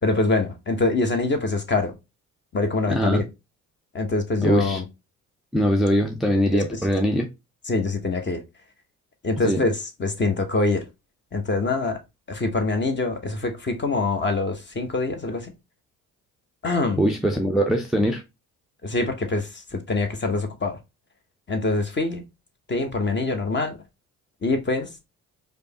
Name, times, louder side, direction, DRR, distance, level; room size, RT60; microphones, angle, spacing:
voice 1, 0.0-1.9 2.5-3.3 3.9-4.8 6.5-6.8 7.6-8.4 9.2-10.8 11.3-12.0 12.3-15.5 16.6-17.0 18.8-20.8 21.5-22.2 22.7-23.8 24.4-25.1, left 3 dB, 25° left, 1.0 m, -24 dB
voice 2, 2.9-3.2 4.4-4.8 5.5-7.3 9.4-9.6 17.0-18.2, equal, ahead, 0.6 m, -22 dB
5.0 x 2.1 x 2.8 m
hypercardioid pair, 45°, 42 cm